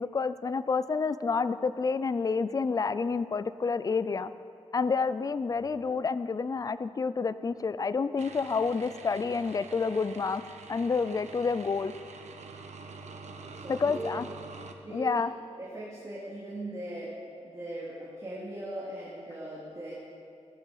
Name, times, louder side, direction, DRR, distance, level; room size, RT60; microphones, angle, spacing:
voice 1, 0.0-4.3 4.7-10.4 10.7-11.9 13.7-14.2 14.9-15.3, left 4 dB, 30° left, 14 dB, 0.4 m, -29 dB
sound 1, 8.2-14.7, right 4 dB, 85° right, 1.2 m, -46 dB
voice 2, 13.5-14.3 14.8-15.1 15.6-17.2 17.4-19.9, right 1 dB, 30° right, -6 dB, 2.5 m, -39 dB
17.5 x 11.0 x 6.5 m, 2.5 s
wide cardioid pair, 165°, 12 cm